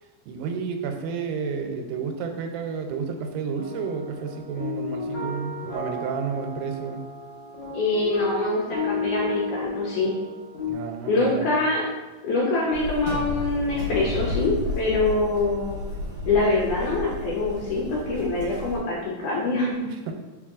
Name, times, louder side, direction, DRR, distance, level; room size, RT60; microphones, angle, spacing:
voice 1, 0.3-7.0 10.6-11.5 19.9-20.1, right 5 dB, 90° right, 4 dB, 2.3 m, -31 dB
sound 1, 3.5-10.7, left 3 dB, 60° left, 1.5 m, -33 dB
voice 2, 7.7-10.1 11.1-11.9 12.2-15.8 16.2-19.9, left 2 dB, 75° left, -4 dB, 1.9 m, -24 dB
sound 2, 12.7-18.8, left 2 dB, 70° right, 1.7 m, -32 dB
4.4 x 3.8 x 2.4 m, 1.1 s
omnidirectional pair, 4.0 m